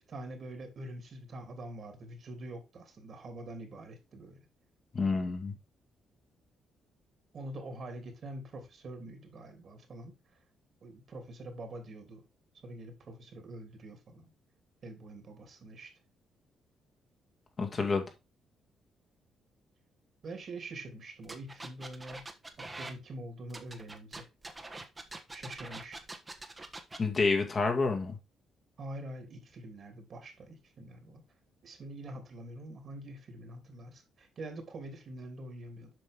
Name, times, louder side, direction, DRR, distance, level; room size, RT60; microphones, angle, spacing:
voice 1, 0.0-4.4 7.3-10.1 10.8-12.2 12.6-14.3 14.8-15.9 20.2-22.2 22.6-24.3 25.3-26.0 28.8-31.2 31.6-35.9, right 1 dB, 50° right, 3.0 m, -45 dB
voice 2, 4.9-5.5 17.6-18.0 27.0-28.2, left 4 dB, 35° left, 2.0 m, -28 dB
sound 1, 21.2-22.9 23.5-27.0, right 2 dB, 20° right, 1.5 m, -44 dB
7.9 x 5.4 x 3.6 m
cardioid pair, 90°, 0 cm